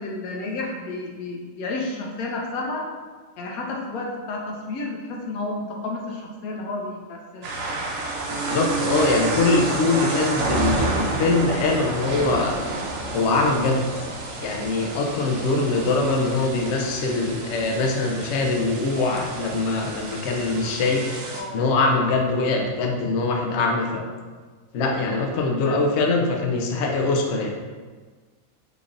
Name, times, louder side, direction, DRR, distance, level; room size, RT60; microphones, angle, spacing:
voice 1, 0.0-2.8 3.4-7.7 21.3-21.7 25.7-25.9, left 2 dB, 85° left, -1 dB, 1.1 m, -31 dB
sound 1, 7.4-21.4, right 2 dB, 65° right, 0.9 m, -29 dB
voice 2, 8.4-12.6 13.1-13.9 14.4-21.1 21.5-24.0 24.7-27.5, left 3 dB, 65° left, 1 dB, 0.7 m, -23 dB
4.0 x 3.3 x 2.4 m, 1.4 s
omnidirectional pair, 1.5 m